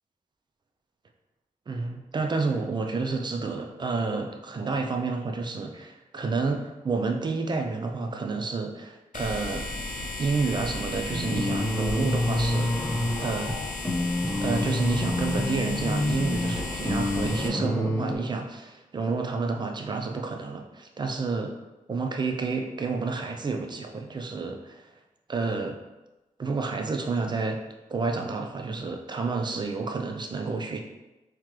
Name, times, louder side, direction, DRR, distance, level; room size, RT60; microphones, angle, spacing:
voice 1, 1.7-9.7 10.2-13.5 14.4-21.5 21.9-24.9 25.3-25.8 26.4-27.6 27.9-30.8, right 4 dB, 35° right, 3 dB, 0.4 m, -30 dB
sound 1, 9.1-17.5, left 2 dB, 75° left, 0.5 m, -35 dB
sound 2, 11.1-18.2, left 1 dB, 10° left, 1.0 m, -28 dB
3.6 x 3.0 x 3.1 m, 1.0 s
wide cardioid pair, 150°, 14 cm